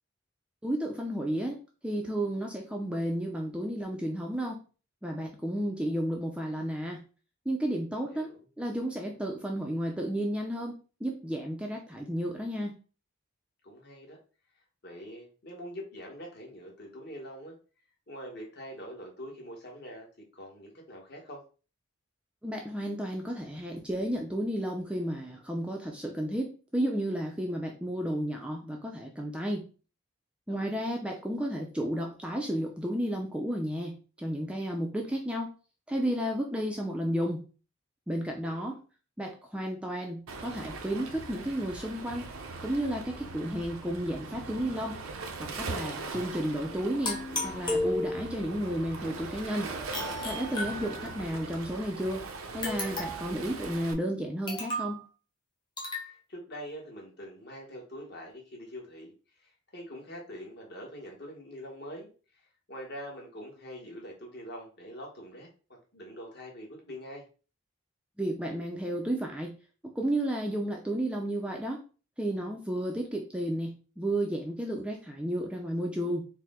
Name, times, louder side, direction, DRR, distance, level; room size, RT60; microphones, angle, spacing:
voice 1, 0.6-1.6 1.8-4.6 5.0-7.0 7.5-8.3 8.6-10.7 11.0-12.8 22.4-29.6 30.5-35.5 35.9-37.4 38.1-38.8 39.2-42.3 42.6-45.0 45.4-49.7 50.2-52.2 52.5-55.0 68.2-69.5 69.8-71.8 72.2-76.3, equal, 5° right, 1 dB, 0.4 m, -32 dB
voice 2, 8.0-8.4 13.6-14.2 14.8-17.6 18.1-20.1 20.3-21.4 30.5-30.9 38.4-38.8 50.8-51.4 55.9-65.5 65.9-67.2, equal, 50° left, -1 dB, 1.1 m, -44 dB
Waves surf, 40.3-53.9, right 3 dB, 80° right, 0.5 m, -40 dB
sound 1, 47.0-48.5 49.9-51.4 52.6-53.4 54.5-55.0 55.8-56.1, left 1 dB, 20° left, 0.8 m, -34 dB
4.5 x 2.0 x 3.6 m, 0.36 s
head